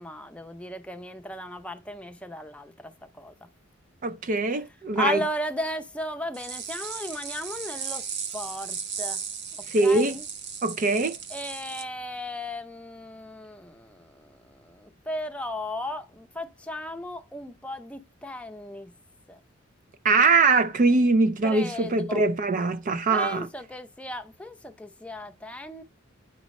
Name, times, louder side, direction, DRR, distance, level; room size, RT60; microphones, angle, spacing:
voice 1, 0.0-3.3 4.9-9.2 9.6-10.3 11.3-18.9 19.3-19.4 21.4-22.2 23.1-25.8, left 1 dB, 5° left, 0.6 m, -36 dB
voice 2, 4.0-5.2 9.7-10.2 10.6-11.2 20.0-23.5, right 3 dB, 40° right, 0.4 m, -22 dB
sound 1, 6.3-11.8, right 6 dB, 60° right, 0.7 m, -36 dB
8.7 x 5.2 x 3.1 m
head